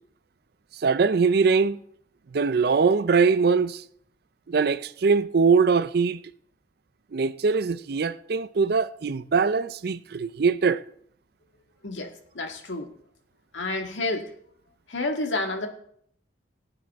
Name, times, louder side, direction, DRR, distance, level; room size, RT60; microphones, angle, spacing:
voice 1, 0.8-1.8 2.3-3.8 4.5-6.2 7.1-10.8, right 5 dB, 55° right, 0.4 m, -22 dB
voice 2, 11.8-12.9 13.5-14.2 14.9-15.7, left 2 dB, 85° left, 1.8 m, -29 dB
19.0 x 8.9 x 3.5 m
head